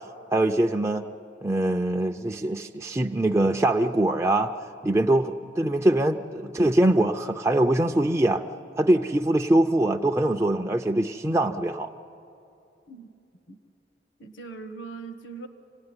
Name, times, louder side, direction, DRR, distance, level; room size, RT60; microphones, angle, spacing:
voice 1, 0.3-1.1 1.4-4.5 4.8-8.4 8.8-11.9, right 1 dB, 15° right, 2 dB, 0.5 m, -23 dB
voice 2, 14.2-15.5, right 4 dB, 80° left, 8 dB, 1.3 m, -40 dB
26.5 x 18.0 x 9.6 m, 2.7 s
head